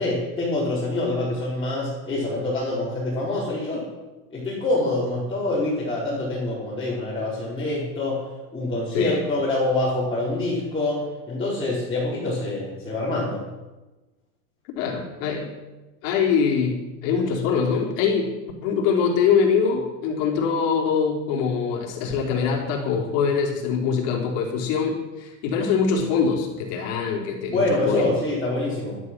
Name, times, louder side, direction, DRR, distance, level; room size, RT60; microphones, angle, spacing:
voice 1, 0.0-3.9 4.3-8.3 8.5-13.4 27.5-29.0, left 2 dB, 10° left, -9 dB, 4.7 m, -25 dB
voice 2, 14.8-15.5 16.0-18.3 18.6-28.1, left 6 dB, 55° left, 0 dB, 4.3 m, -23 dB
12.5 x 11.5 x 6.3 m, 1.1 s
supercardioid pair, 135°, 47 cm